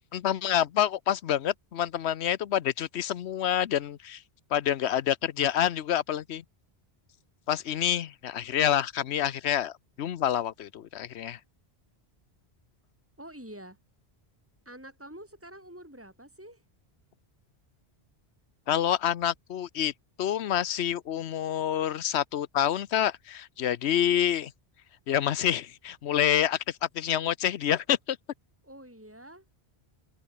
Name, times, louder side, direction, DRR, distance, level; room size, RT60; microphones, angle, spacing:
voice 1, 0.1-4.2 4.5-6.4 7.5-11.4 18.7-19.9 20.2-24.5 25.1-28.2, left 10 dB, 90° left, 1.0 m, -27 dB
voice 2, 13.2-13.8 14.6-16.6 28.6-29.5, right 1 dB, 10° right, 4.6 m, -47 dB
omnidirectional pair, 1.1 m